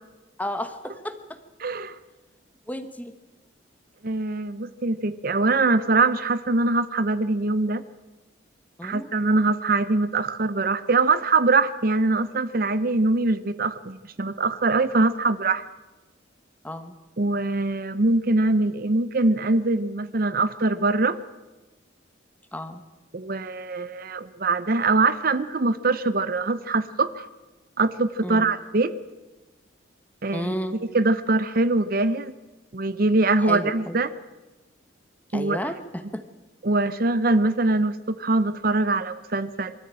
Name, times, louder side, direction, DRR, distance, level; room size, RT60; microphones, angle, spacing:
voice 1, 0.4-1.2 2.7-3.1 8.8-9.1 16.6-17.0 22.5-22.8 28.2-28.5 30.3-30.8 33.4-33.9 35.3-36.2, equal, 10° left, 9 dB, 1.2 m, -32 dB
voice 2, 1.6-2.0 4.0-7.8 8.8-15.6 17.2-21.2 23.1-27.3 27.8-28.9 30.2-30.6 30.9-32.3 32.7-34.1 35.3-35.6 36.6-39.7, right 3 dB, 45° right, 13 dB, 0.7 m, -23 dB
23.0 x 14.0 x 8.8 m, 1.1 s
head